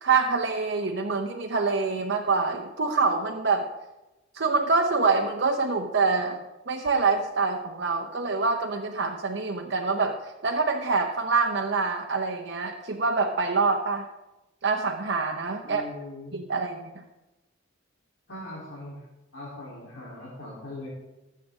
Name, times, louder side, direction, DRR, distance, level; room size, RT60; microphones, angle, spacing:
voice 1, 0.0-3.7 4.3-6.4 6.7-14.1 14.6-15.8 16.3-17.0, right 4 dB, 60° right, 2 dB, 0.8 m, -25 dB
voice 2, 15.6-16.4 18.3-19.0 19.3-20.9, left 1 dB, 85° left, -8 dB, 3.5 m, -40 dB
19.5 x 7.5 x 3.7 m, 1.0 s
head